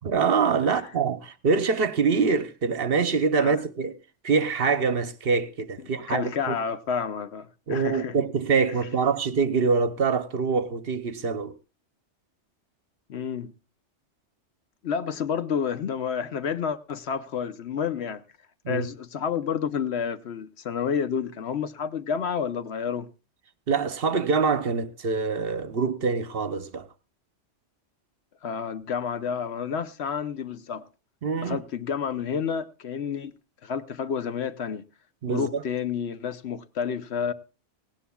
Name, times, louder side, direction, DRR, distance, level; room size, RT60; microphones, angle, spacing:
voice 1, 0.0-4.0 4.2-6.5 7.7-11.5 18.6-18.9 23.7-26.9 31.2-31.6 35.2-35.6, right 5 dB, 55° right, 1.0 m, -25 dB
voice 2, 6.1-8.1 13.1-13.5 14.8-18.2 18.7-23.1 28.4-30.9 31.4-33.3 33.6-34.8 35.3-37.3, left 7 dB, 65° left, 1.0 m, -30 dB
18.5 x 16.5 x 2.3 m
omnidirectional pair, 1.2 m